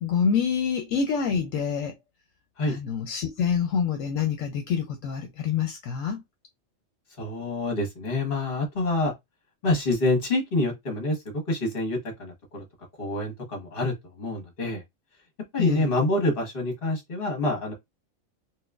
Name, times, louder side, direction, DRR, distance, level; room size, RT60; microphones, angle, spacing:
voice 1, 0.0-1.9 2.6-6.2 15.6-15.9, left 6 dB, 75° left, 1.0 m, -26 dB
voice 2, 7.2-9.1 9.6-11.2 11.5-12.6 13.0-14.8 15.5-17.7, left 2 dB, 45° left, 1.4 m, -27 dB
3.9 x 2.4 x 2.4 m
omnidirectional pair, 1.4 m